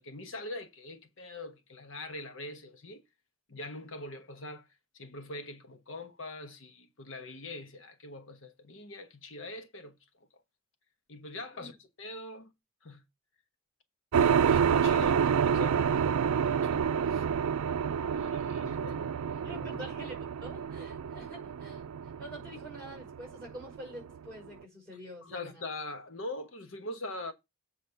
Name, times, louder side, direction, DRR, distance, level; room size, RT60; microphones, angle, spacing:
voice 1, 0.0-3.0 3.5-4.7 4.9-10.0 11.1-12.5 12.8-13.0 14.1-16.2 16.5-17.3 18.1-19.1 19.6-19.8 25.2-27.3, left 2 dB, 65° left, 1.1 m, -43 dB
sound 1, 14.1-24.3, right 7 dB, 90° right, 0.4 m, -28 dB
voice 2, 19.4-21.8 22.2-25.4, equal, 5° left, 5.5 m, -46 dB
7.9 x 4.1 x 6.8 m
head